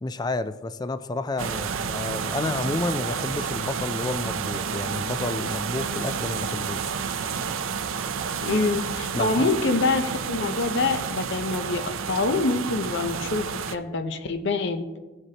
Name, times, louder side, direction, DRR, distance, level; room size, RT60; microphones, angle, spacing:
voice 1, 0.0-7.0 9.1-9.5, left 2 dB, 20° left, 0.4 m, -30 dB
sound 1, 1.4-13.8, right 6 dB, 75° right, 0.6 m, -30 dB
voice 2, 8.4-14.9, left 3 dB, 60° left, 0.7 m, -25 dB
16.0 x 8.1 x 2.9 m
head